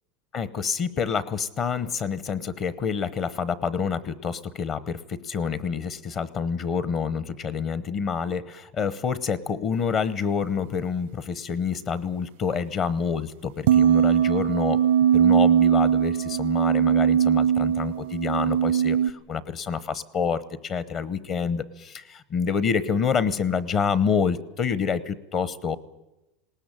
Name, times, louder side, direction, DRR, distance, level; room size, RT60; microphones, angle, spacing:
voice 1, 0.3-14.8 15.1-25.8, left 6 dB, 30° left, 18 dB, 0.9 m, -27 dB
sound 1, 13.7-19.1, right 9 dB, 80° right, 0.7 m, -20 dB
20.0 x 18.5 x 8.9 m, 0.95 s
supercardioid pair, 165°, 0 cm